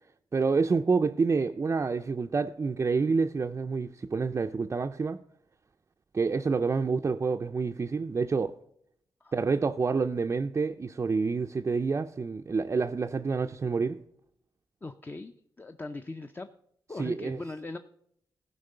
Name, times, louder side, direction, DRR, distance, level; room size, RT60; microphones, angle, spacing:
voice 1, 0.3-5.2 6.1-8.6 9.3-14.0 17.0-17.4, right 4 dB, 30° right, 0.4 m, -28 dB
voice 2, 14.8-15.3 15.6-16.5 16.9-17.8, left 2 dB, 20° left, 0.5 m, -39 dB
15.0 x 5.2 x 6.6 m
wide cardioid pair, 105°, 9 cm